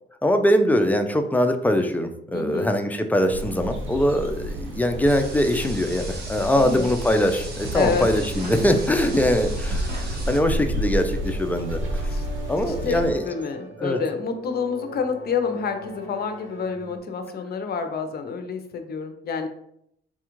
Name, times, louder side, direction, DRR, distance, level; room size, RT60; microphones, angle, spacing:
voice 1, 0.2-12.1 12.5-13.2 13.8-14.0, equal, 10° left, 6 dB, 0.4 m, -22 dB
voice 2, 2.3-2.8 6.6-6.9 7.7-8.1 12.1-12.3 12.7-19.5, left 5 dB, 50° left, 7 dB, 0.6 m, -28 dB
sound 1, 3.3-13.1, right 1 dB, 75° right, 0.8 m, -31 dB
sound 2, 5.0-10.4, right 2 dB, 50° right, 1.3 m, -40 dB
sound 3, 7.6-17.0, right 1 dB, 35° right, 1.2 m, -38 dB
4.2 x 2.3 x 3.0 m, 0.74 s
cardioid pair, 90°, 20 cm